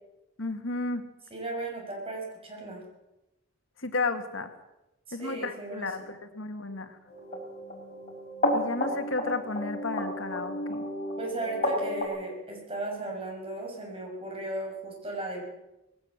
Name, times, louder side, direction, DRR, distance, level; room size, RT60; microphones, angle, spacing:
voice 1, 0.4-1.0 3.8-4.5 5.1-7.0 8.5-10.8, left 3 dB, 70° left, 7 dB, 2.0 m, -33 dB
voice 2, 1.3-2.8 5.1-6.1 11.2-15.4, right 2 dB, 30° right, 0 dB, 6.3 m, -36 dB
sound 1, 7.1-12.1, left 1 dB, 35° left, 5.5 m, -32 dB
20.0 x 17.0 x 7.5 m, 0.95 s
head